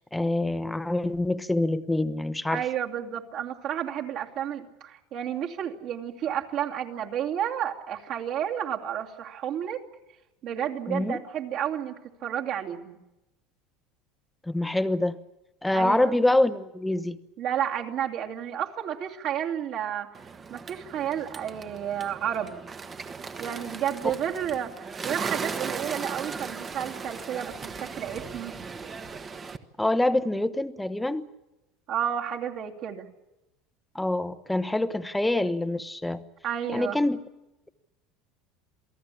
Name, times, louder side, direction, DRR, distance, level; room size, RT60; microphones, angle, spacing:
voice 1, 0.0-2.6 10.9-11.2 14.4-15.2 15.6-17.2 29.8-31.3 33.9-36.2 36.7-37.2, left 1 dB, 5° left, 11 dB, 1.0 m, -25 dB
voice 2, 2.5-9.8 10.4-13.0 15.7-16.1 17.4-20.1 20.5-22.6 23.4-28.5 31.9-33.1 36.4-37.0, right 9 dB, 50° right, 1 dB, 2.8 m, -31 dB
Bird, 20.1-29.6, right 5 dB, 20° right, 1.3 m, -37 dB
28.0 x 18.0 x 8.5 m, 0.98 s
cardioid pair, 150°, 0 cm